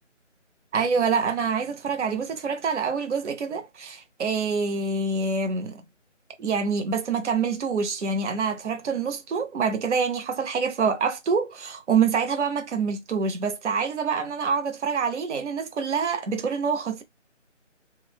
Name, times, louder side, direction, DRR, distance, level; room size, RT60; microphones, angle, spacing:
voice 1, 0.7-5.8 6.4-17.0, right 5 dB, 65° right, 0.5 m, -26 dB
2.9 x 2.0 x 2.2 m
figure-of-eight pair, 160°, 37 cm